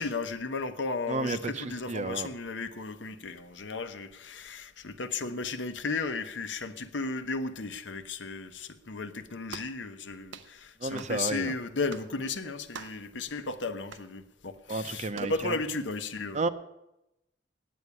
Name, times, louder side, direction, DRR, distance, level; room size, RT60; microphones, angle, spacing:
voice 1, 0.0-16.5, left 3 dB, 85° left, 1.0 m, -35 dB
voice 2, 1.1-2.3 10.8-11.5 14.7-15.6 16.3-16.5, right 3 dB, 40° right, 0.7 m, -32 dB
sound 1, 9.5-9.8 10.3-10.5 11.0-11.2 11.9-12.1 12.7-13.1 13.9-14.1 15.1-15.4, right 6 dB, 85° right, 0.7 m, -45 dB
9.6 x 8.5 x 9.7 m
head